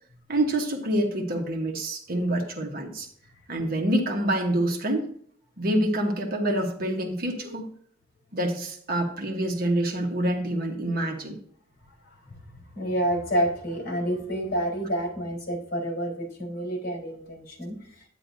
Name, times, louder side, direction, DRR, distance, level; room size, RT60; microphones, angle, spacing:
voice 1, 0.3-3.1 3.5-5.1 5.6-7.7 8.3-11.4, right 1 dB, 50° right, 2 dB, 1.2 m, -26 dB
voice 2, 12.7-17.8, right 1 dB, 50° left, 0 dB, 3.9 m, -28 dB
9.7 x 9.2 x 2.6 m, 0.63 s
head